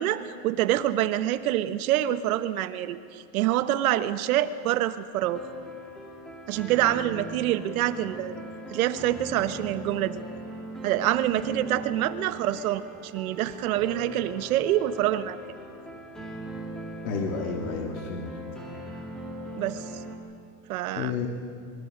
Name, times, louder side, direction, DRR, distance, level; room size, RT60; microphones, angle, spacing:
voice 1, 0.0-5.4 6.5-8.4 8.7-10.2 10.8-15.4 19.6-19.8 20.7-21.1, right 13 dB, 90° right, 12 dB, 1.2 m, -26 dB
sound 1, 5.1-20.2, right 1 dB, ahead, 2.3 m, -39 dB
voice 2, 17.0-18.3 21.0-21.3, left 5 dB, 85° left, 0 dB, 2.8 m, -31 dB
26.0 x 23.5 x 5.2 m, 2.2 s
supercardioid pair, 170°, 42 cm